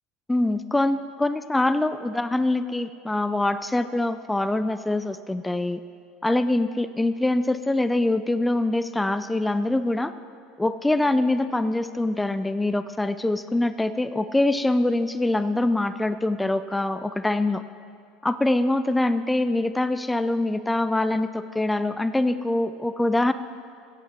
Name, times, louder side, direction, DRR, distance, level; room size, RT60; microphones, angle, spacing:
voice 1, 0.3-5.8 6.2-10.1 10.6-17.6 18.2-23.3, left 2 dB, 10° left, 12 dB, 0.4 m, -24 dB
16.0 x 8.3 x 4.5 m, 2.3 s
hypercardioid pair, 75°, 0 cm